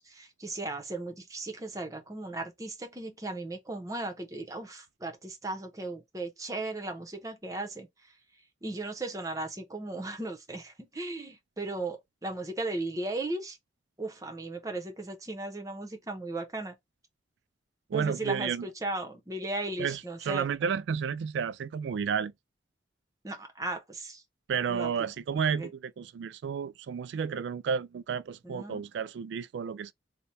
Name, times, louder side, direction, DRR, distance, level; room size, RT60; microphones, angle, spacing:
voice 1, 0.0-7.9 8.6-13.6 14.0-16.8 17.9-20.5 23.2-24.2 24.7-24.9 25.5-25.7 28.4-28.8, right 2 dB, 20° right, 0.8 m, -36 dB
voice 2, 17.9-18.7 19.8-22.3 24.5-29.9, right 6 dB, 70° right, 0.3 m, -32 dB
3.3 x 2.1 x 4.1 m
head